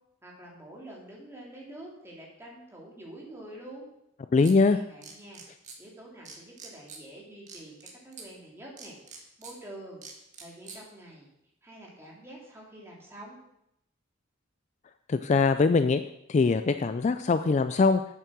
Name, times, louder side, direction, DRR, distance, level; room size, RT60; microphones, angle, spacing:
voice 1, 0.2-3.9 4.7-5.4 5.8-7.8 8.0-10.1 10.4-11.3 11.6-13.4, right 1 dB, 10° right, -3 dB, 2.6 m, -47 dB
voice 2, 4.3-4.8 15.1-16.0 16.3-18.0, left 4 dB, 35° left, 10 dB, 0.3 m, -22 dB
sound 1, 4.4-4.6 5.0-5.8 6.2-7.0 7.5-8.3 8.8-9.5 10.0-10.8, right 5 dB, 35° right, 1.6 m, -45 dB
8.4 x 7.4 x 6.1 m, 0.81 s
head